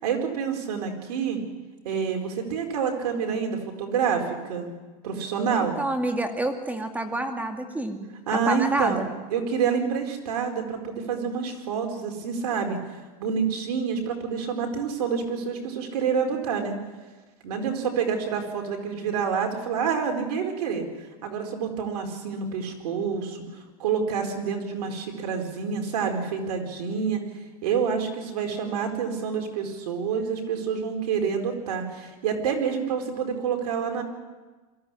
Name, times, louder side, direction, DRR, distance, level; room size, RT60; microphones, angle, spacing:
voice 1, 0.0-1.4 1.8-4.7 5.0-5.8 8.3-9.0 9.3-12.8 13.2-16.7 17.4-20.8 21.2-23.4 23.8-27.2 27.6-34.0, right 6 dB, 80° right, 4 dB, 4.5 m, -27 dB
voice 2, 5.8-8.0 8.5-9.1, right 1 dB, 10° right, 5 dB, 2.3 m, -27 dB
23.0 x 15.0 x 10.0 m, 1.3 s
supercardioid pair, 130°, 20 cm